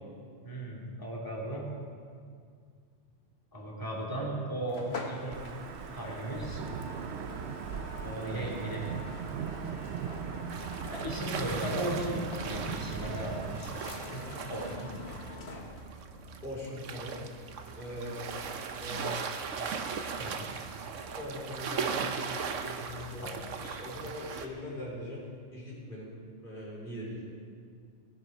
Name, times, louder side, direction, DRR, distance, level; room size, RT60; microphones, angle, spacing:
voice 1, 0.4-1.6 3.5-5.4 5.9-6.6 8.0-8.9 10.9-12.2 12.5-14.2 14.5-14.9 20.1-20.5 23.2-23.8, right 1 dB, 15° left, -4 dB, 2.7 m, -36 dB
sound 1, 4.7-16.0, left 3 dB, 60° left, 1.5 m, -45 dB
Wind / Thunder / Rain, 5.3-13.6, right 8 dB, 65° right, 0.9 m, -39 dB
voice 2, 8.2-8.6 15.6-15.7 16.4-17.4 17.7-19.3 21.1-22.2 22.6-23.3 23.8-25.2 25.5-26.1 26.4-27.4, left 1 dB, 45° left, -6 dB, 4.8 m, -41 dB
sound 2, 10.5-24.5, right 6 dB, 80° right, 1.2 m, -38 dB
19.0 x 9.6 x 5.4 m, 2.1 s
omnidirectional pair, 1.3 m